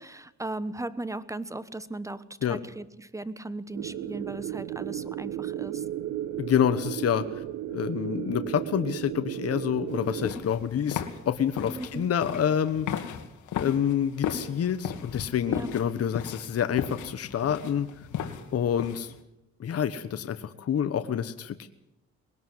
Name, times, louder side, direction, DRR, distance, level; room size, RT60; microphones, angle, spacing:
voice 1, 0.0-5.8 11.7-12.1 15.5-15.7, right 2 dB, 10° right, 16 dB, 1.2 m, -37 dB
sound 1, 3.7-10.3, right 12 dB, 90° right, 1.2 m, -34 dB
voice 2, 6.4-7.4 7.7-13.2 13.5-17.9 18.5-19.1 19.6-21.7, left 9 dB, 50° left, 10 dB, 1.2 m, -28 dB
sound 2, 9.9-19.2, left 8 dB, 80° left, 2.4 m, -35 dB
21.0 x 18.0 x 7.9 m, 0.88 s
cardioid pair, 90°, 30 cm